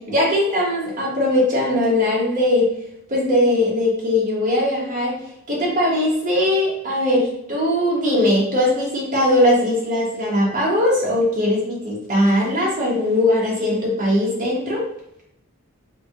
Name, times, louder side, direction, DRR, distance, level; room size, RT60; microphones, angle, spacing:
voice 1, 0.1-2.7 3.1-5.2 5.5-14.9, left 1 dB, 40° right, -5 dB, 1.3 m, -20 dB
5.0 x 2.4 x 3.0 m, 0.76 s
head